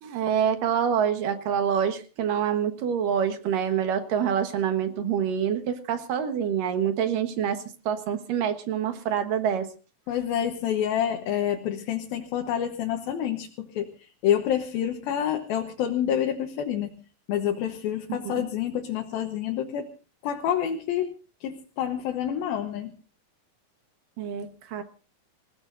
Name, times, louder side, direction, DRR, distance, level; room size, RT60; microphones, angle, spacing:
voice 1, 0.0-9.7 18.1-18.4 24.2-24.8, right 8 dB, 70° right, 8 dB, 2.9 m, -26 dB
voice 2, 10.1-16.9 17.3-19.9 20.2-21.1 21.4-22.9, left 10 dB, 85° left, 3 dB, 3.0 m, -28 dB
27.0 x 16.5 x 2.6 m, 0.35 s
omnidirectional pair, 4.1 m